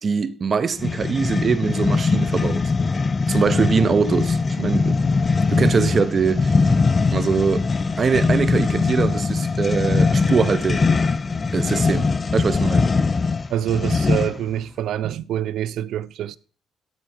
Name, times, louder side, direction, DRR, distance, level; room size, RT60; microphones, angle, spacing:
voice 1, 0.0-2.6 3.3-5.0 5.5-6.6 7.1-7.7 8.0-10.8 11.5-12.9, right 5 dB, 45° right, 0.7 m, -22 dB
sound 1, 0.8-14.5, left 4 dB, 35° left, 0.4 m, -21 dB
voice 2, 13.5-16.4, right 11 dB, 80° right, 0.4 m, -26 dB
12.5 x 4.5 x 4.4 m
cardioid pair, 90°, 0 cm